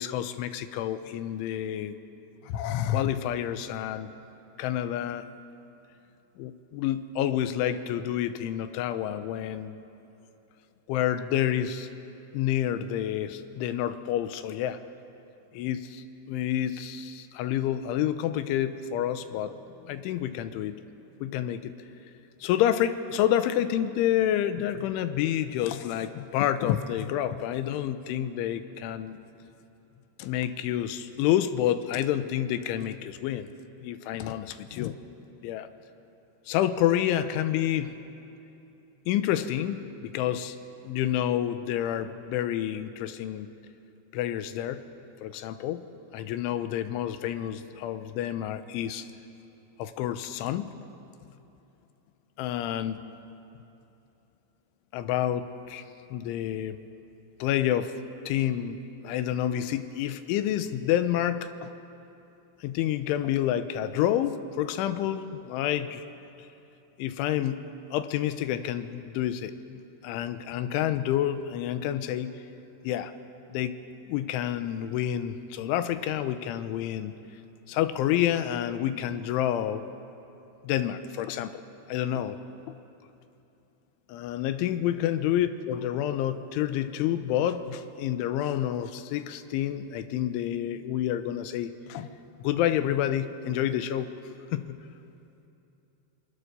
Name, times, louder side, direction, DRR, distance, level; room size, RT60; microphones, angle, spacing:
voice 1, 0.0-2.0 2.5-4.1 4.6-5.3 6.4-9.8 10.9-11.9 12.3-14.8 15.5-19.5 19.8-20.8 21.2-21.7 22.4-29.2 30.2-33.5 33.8-35.0 35.4-35.7 36.5-38.0 39.1-40.6 40.8-43.5 44.1-44.8 45.2-45.9 46.1-49.1 49.8-50.7 52.4-53.0 54.9-55.8 56.1-56.8 57.4-58.0 58.3-58.8 59.0-61.7 62.6-66.0 67.0-72.3 72.8-73.1 73.5-73.8 74.1-77.1 77.7-79.8 80.6-81.6 81.9-82.4 82.7-82.8 84.1-92.1 92.4-94.1 94.5-94.8, left 11 dB, 90° left, 11 dB, 3.4 m, -29 dB
26.0 x 24.5 x 6.9 m, 2.9 s
omnidirectional pair, 5.4 m